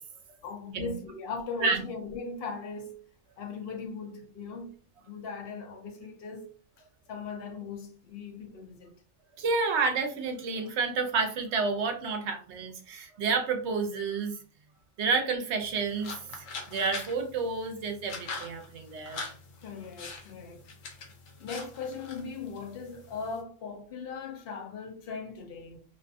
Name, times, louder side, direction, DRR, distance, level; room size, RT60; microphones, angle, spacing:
voice 1, 0.4-3.0 3.4-4.7 5.0-6.5 7.1-8.9 19.6-20.6 21.4-25.8, left 5 dB, 60° left, 0.7 m, -39 dB
voice 2, 9.4-14.4 15.0-19.2, right 4 dB, 70° right, 0.8 m, -30 dB
sound 1, 15.6-23.4, left 3 dB, 80° left, 1.0 m, -43 dB
2.6 x 2.4 x 2.3 m
omnidirectional pair, 1.3 m